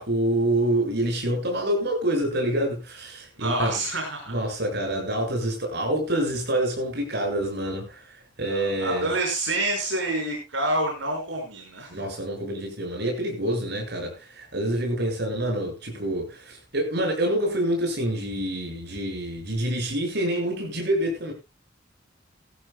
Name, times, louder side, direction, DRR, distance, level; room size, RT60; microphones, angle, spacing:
voice 1, 0.0-3.8 4.3-9.1 11.9-21.3, right 1 dB, 60° right, 6.9 m, -27 dB
voice 2, 3.4-4.4 8.4-12.0, right 1 dB, 80° right, 5.8 m, -28 dB
19.0 x 14.0 x 2.3 m
head